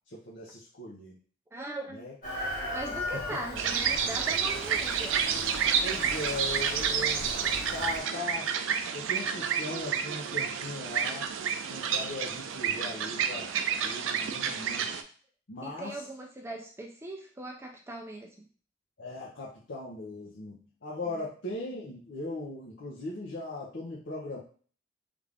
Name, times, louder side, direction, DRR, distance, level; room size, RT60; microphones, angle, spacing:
voice 1, 0.1-1.2 1.9-2.1 3.3-3.4 5.8-8.5 8.9-11.3 11.7-13.5 13.8-15.0 15.5-16.0 19.0-24.4, left 2 dB, 70° left, -6 dB, 0.7 m, -39 dB
voice 2, 1.5-2.1 2.7-5.2 15.6-18.5, right 1 dB, 15° right, 1 dB, 0.4 m, -39 dB
Chicken rooster, 2.2-8.0, left 1 dB, 50° left, 1.7 m, -38 dB
sound 1, 3.6-15.0, right 7 dB, 80° right, 0.4 m, -30 dB
3.4 x 2.4 x 3.4 m, 0.43 s
head